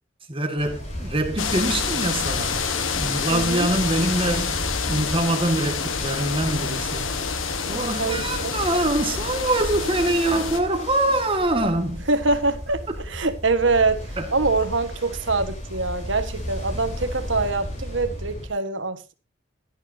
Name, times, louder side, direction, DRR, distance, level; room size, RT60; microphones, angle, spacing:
voice 1, 0.3-2.6 3.0-4.6 4.9-7.1 7.7-12.1 14.2-14.3 16.7-16.8, right 1 dB, 25° right, 1.8 m, -24 dB
Ocean, 0.6-18.5, equal, 35° left, 4.5 m, -35 dB
sound 1, 1.4-10.6, left 5 dB, 85° left, 1.4 m, -28 dB
voice 2, 3.3-3.7 8.0-8.5 12.1-19.1, right 3 dB, 70° right, 1.5 m, -24 dB
16.5 x 11.5 x 2.8 m
head